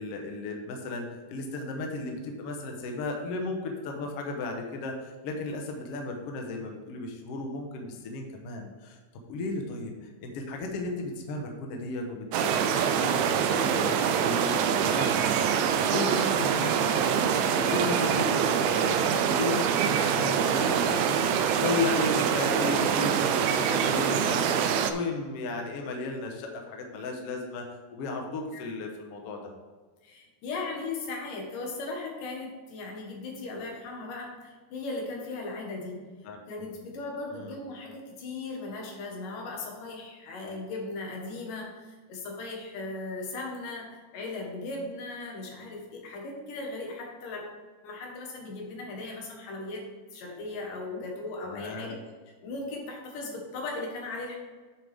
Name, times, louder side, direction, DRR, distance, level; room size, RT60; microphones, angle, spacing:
voice 1, 0.0-9.0 9.3-15.5 15.9-29.5 36.2-36.7 37.3-37.6 51.5-51.9, left 3 dB, 60° left, 2 dB, 1.7 m, -35 dB
sound 1, 12.3-24.9, right 7 dB, 90° right, 1.5 m, -25 dB
voice 2, 30.0-36.1 36.5-49.8 50.1-51.9 52.4-54.4, left 3 dB, 80° left, 0 dB, 3.1 m, -37 dB
9.5 x 6.8 x 3.6 m, 1.4 s
omnidirectional pair, 3.8 m